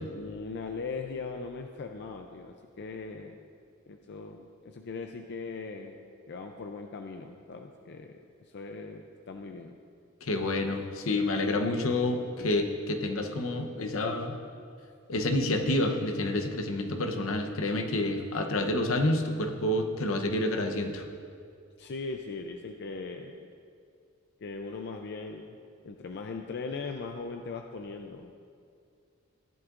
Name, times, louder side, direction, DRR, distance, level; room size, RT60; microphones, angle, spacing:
voice 1, 0.1-3.4 3.9-8.2 8.5-9.8 11.5-11.8 12.4-12.5 18.6-18.8 21.8-23.4 24.4-25.6 25.8-28.3, left 4 dB, 55° left, 4 dB, 0.5 m, -39 dB
voice 2, 10.2-14.3 15.1-21.1, left 1 dB, 80° left, 5 dB, 0.9 m, -29 dB
14.5 x 11.0 x 2.5 m, 2.3 s
head